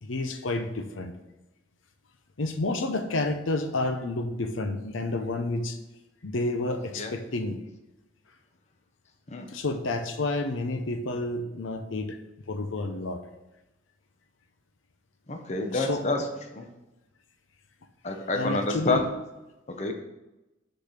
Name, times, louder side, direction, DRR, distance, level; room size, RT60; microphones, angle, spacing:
voice 1, 0.0-1.1 2.4-5.8 6.2-7.6 9.5-12.2 12.5-13.2 15.7-16.0 18.3-19.1, left 2 dB, 90° left, 7 dB, 0.7 m, -30 dB
voice 2, 15.3-16.2 16.5-16.7 18.0-19.0 19.8-19.9, left 2 dB, 35° left, 4 dB, 0.8 m, -28 dB
6.5 x 4.0 x 6.5 m, 1.0 s
head